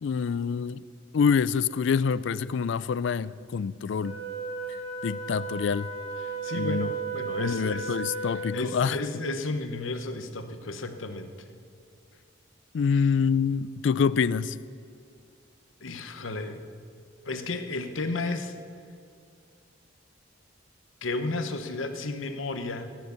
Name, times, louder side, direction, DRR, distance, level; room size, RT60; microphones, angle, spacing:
voice 1, 0.0-0.8 1.1-4.2 5.0-5.9 6.5-6.9 7.4-9.0 12.7-14.6, left 6 dB, 65° left, 19 dB, 0.4 m, -26 dB
Wind instrument woodwind instrument, 4.0-8.6, right 4 dB, 45° right, 3.7 m, -34 dB
voice 2, 6.2-11.3 12.9-13.1 15.8-16.6 17.2-18.5 21.0-22.9, left 2 dB, 90° left, 8 dB, 1.0 m, -33 dB
16.0 x 9.3 x 7.0 m, 2.3 s
head